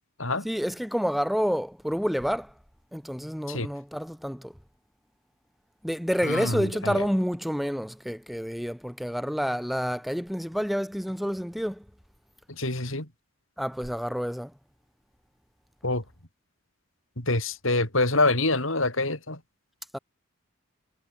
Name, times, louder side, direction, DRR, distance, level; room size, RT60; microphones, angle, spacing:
voice 1, 0.4-2.5 2.9-4.5 5.8-11.8 13.6-14.5 19.9-20.0, equal, ahead, 3.7 m, -29 dB
voice 2, 6.2-7.0 12.6-13.1 15.8-16.0 17.2-19.4, left 2 dB, 70° left, 6.2 m, -26 dB
head